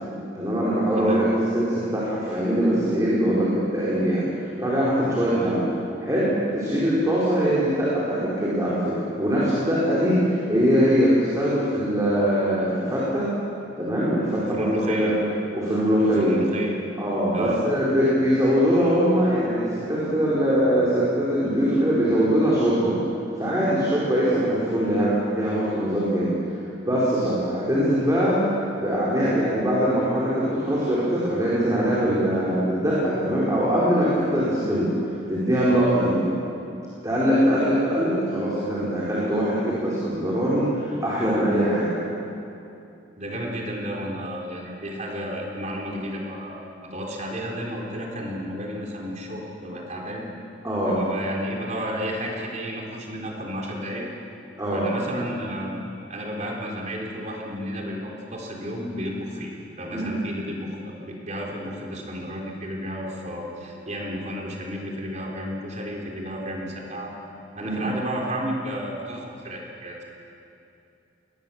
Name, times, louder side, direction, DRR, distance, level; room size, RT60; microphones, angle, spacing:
voice 1, 0.3-4.3 4.6-5.6 6.0-10.2 10.5-13.3 13.8-15.2 15.5-16.4 17.0-23.0 23.4-26.3 26.8-28.4 28.8-34.9 35.3-36.2 37.0-41.9 50.6-51.0 54.6-54.9 59.9-60.1 67.6-67.8, equal, 20° right, -8 dB, 4.4 m, -22 dB
voice 2, 1.0-1.3 5.3-5.6 14.4-15.2 16.0-16.8 17.3-17.6 43.2-50.3 50.8-54.1 54.7-55.8 56.1-59.5 59.8-67.1 67.6-70.0, equal, 40° right, -1 dB, 3.8 m, -32 dB
22.0 x 19.5 x 7.2 m, 2.7 s
head